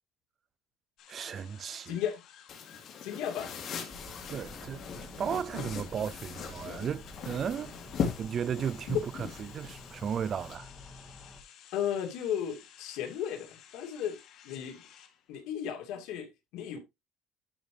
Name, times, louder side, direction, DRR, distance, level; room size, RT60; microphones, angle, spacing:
sound 1, 1.0-15.5, left 9 dB, 60° left, 1.9 m, -55 dB
voice 1, 1.1-2.0 4.3-7.7 8.2-10.7, right 8 dB, 35° right, 0.4 m, -35 dB
voice 2, 1.9-2.2 3.0-3.5 11.7-14.2 14.4-14.8 15.3-16.8, left 9 dB, 80° left, 2.5 m, -35 dB
sound 2, 2.5-10.5, left 6 dB, 45° left, 2.8 m, -39 dB
sound 3, 3.9-11.4, left 1 dB, 10° left, 1.8 m, -49 dB
11.5 x 5.0 x 3.3 m
cardioid pair, 155°, 0 cm